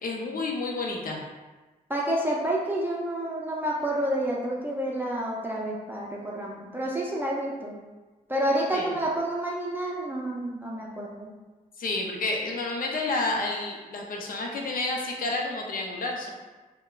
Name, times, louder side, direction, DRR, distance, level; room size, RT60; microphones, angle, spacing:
voice 1, 0.0-1.2 8.7-8.9 11.8-16.3, left 2 dB, 70° left, 0 dB, 0.6 m, -30 dB
voice 2, 1.9-7.8 8.3-11.3, right 1 dB, 15° right, -4 dB, 0.5 m, -29 dB
3.4 x 2.1 x 2.4 m, 1.2 s
cardioid pair, 70°, 15 cm